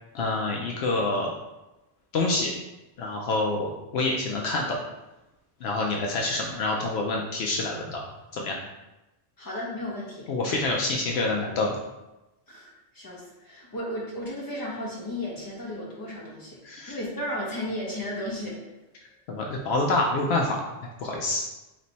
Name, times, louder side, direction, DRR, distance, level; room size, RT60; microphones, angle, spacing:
voice 1, 0.1-1.3 2.1-2.5 3.0-4.8 5.6-8.0 8.3-8.6 10.3-11.8 16.6-16.9 19.3-20.6 21.0-21.4, left 2 dB, 70° left, -1 dB, 0.8 m, -27 dB
voice 2, 9.4-10.3 12.5-12.7 12.9-16.6 16.9-18.6, left 1 dB, 20° left, -4 dB, 0.9 m, -34 dB
3.3 x 3.1 x 4.0 m, 1.0 s
omnidirectional pair, 1.2 m